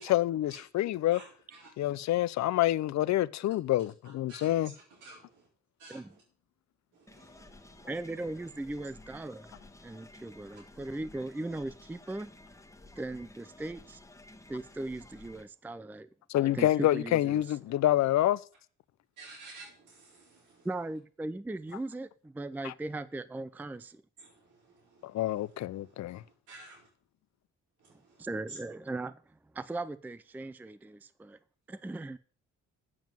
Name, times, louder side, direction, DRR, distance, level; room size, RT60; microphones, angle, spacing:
voice 1, 0.0-1.2 1.8-4.7 16.3-18.4 22.6-22.7 25.0-26.2, left 14 dB, 65° left, 0.6 m, -27 dB
voice 2, 1.1-1.7 3.8-5.5 5.8-6.2 6.9-7.9 19.2-20.7 24.2-26.9 27.8-28.2 28.5-28.6, right 3 dB, 90° right, 4.9 m, -53 dB
sound 1, 7.1-15.5, left 2 dB, 10° left, 1.3 m, -54 dB
voice 3, 7.8-9.5 9.8-12.3 13.0-14.0 14.5-16.1 16.4-17.4 20.6-24.0 27.9-31.4 31.7-32.2, right 2 dB, 5° right, 0.4 m, -38 dB
7.5 x 7.2 x 7.5 m
cardioid pair, 90°, 30 cm